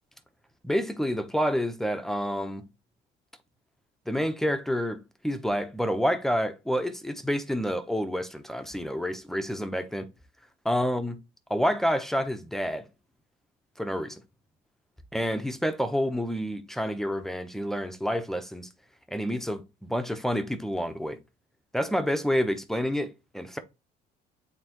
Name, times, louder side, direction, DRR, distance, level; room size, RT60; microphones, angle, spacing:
voice 1, 0.6-2.6 4.1-10.1 10.6-11.2 11.5-12.8 13.8-14.2 15.1-18.7 19.1-21.2 21.7-23.6, equal, ahead, 0.8 m, -28 dB
8.9 x 3.6 x 2.9 m
cardioid pair, 110°, 17 cm